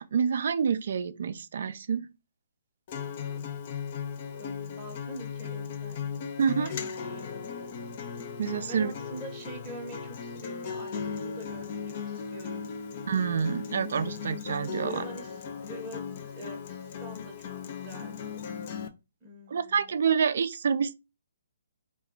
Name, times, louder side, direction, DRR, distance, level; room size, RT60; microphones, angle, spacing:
voice 1, 0.0-2.1 6.4-6.7 8.4-8.9 13.1-15.0 19.5-21.0, right 6 dB, 60° right, 0.3 m, -27 dB
Acoustic guitar, 2.9-18.9, left 6 dB, 40° left, 0.4 m, -37 dB
voice 2, 4.4-7.5 8.6-12.7 14.8-16.0 16.3-18.1 19.2-19.9, right 1 dB, 15° right, 0.8 m, -45 dB
2.3 x 2.2 x 3.6 m
hypercardioid pair, 140°, 0 cm